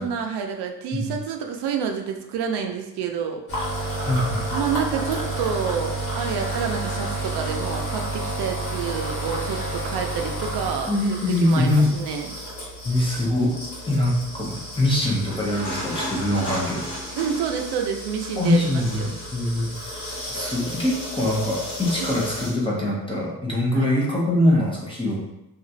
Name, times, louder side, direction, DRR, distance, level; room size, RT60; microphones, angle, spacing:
voice 1, 0.0-3.4 4.5-12.4 17.2-19.1 22.0-22.1 23.7-23.9, right 7 dB, 90° right, 4 dB, 0.5 m, -28 dB
sound 1, 3.5-22.5, right 1 dB, 50° left, 1.3 m, -31 dB
voice 2, 4.0-4.5 10.9-11.9 12.8-13.5 13.9-16.9 18.4-19.7 20.3-25.2, left 1 dB, 15° left, -4 dB, 0.7 m, -23 dB
2.9 x 2.4 x 2.6 m, 0.91 s
cardioid pair, 120°, 39 cm